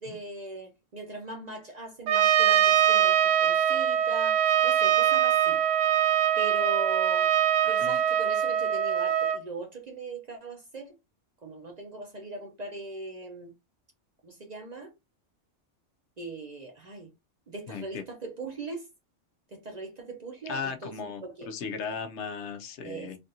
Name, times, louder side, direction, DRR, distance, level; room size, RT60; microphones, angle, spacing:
voice 1, 0.0-5.6 6.4-7.3 7.7-10.9 11.4-13.5 14.2-14.9 16.2-17.1 17.5-18.9 19.5-20.9 21.2-21.5 22.8-23.2, right 2 dB, 45° right, 0.6 m, -40 dB
Trumpet, 2.1-9.4, right 10 dB, 85° right, 0.9 m, -23 dB
voice 2, 7.6-8.0 17.7-18.0 20.5-23.2, left 5 dB, 70° left, 0.9 m, -36 dB
3.3 x 2.5 x 2.7 m
omnidirectional pair, 1.3 m